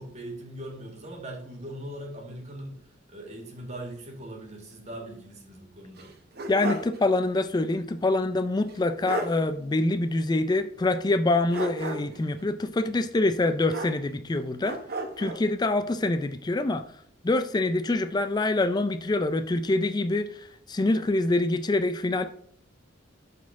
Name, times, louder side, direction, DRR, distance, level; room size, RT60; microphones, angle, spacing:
voice 1, 0.0-2.8 3.1-6.1, right 1 dB, 35° right, 1 dB, 2.0 m, -40 dB
sound 1, 6.0-7.0 7.3-7.4 8.7-8.8 9.1-9.4 11.5-12.2 13.7-14.3 14.6-15.4, right 2 dB, 55° right, 1.2 m, -34 dB
voice 2, 6.5-14.8 15.2-16.8 17.2-22.2, left 2 dB, 20° left, 9 dB, 0.4 m, -25 dB
12.0 x 4.2 x 3.6 m, 0.63 s
head